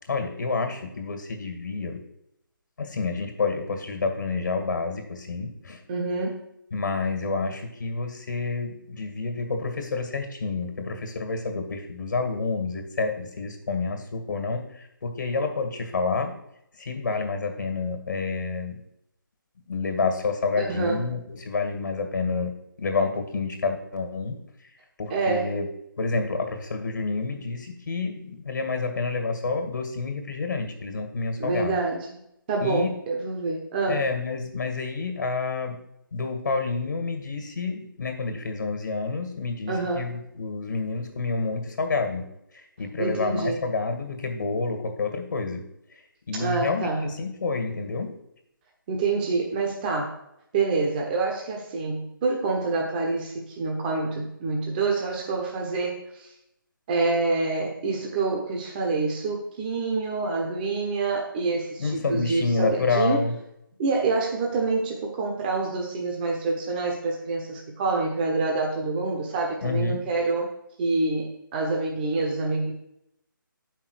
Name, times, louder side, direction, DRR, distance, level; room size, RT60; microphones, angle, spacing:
voice 1, 0.1-2.0 2.8-5.8 6.7-16.3 16.8-18.8 19.7-22.5 22.8-24.4 25.0-25.7 26.0-31.8 32.6-32.9 33.9-35.8 36.1-42.3 42.5-45.6 46.3-48.2 61.8-63.4 69.6-70.0, left 4 dB, 60° left, 6 dB, 2.0 m, -29 dB
voice 2, 5.9-6.5 20.6-21.0 25.1-25.5 31.4-32.1 32.5-34.1 39.7-40.1 43.0-43.6 46.3-47.1 48.9-50.1 50.5-56.3 56.9-63.2 63.8-70.5 70.8-72.7, right 3 dB, 25° right, 0 dB, 1.2 m, -27 dB
7.9 x 5.8 x 6.5 m, 0.79 s
figure-of-eight pair, 155°, 11 cm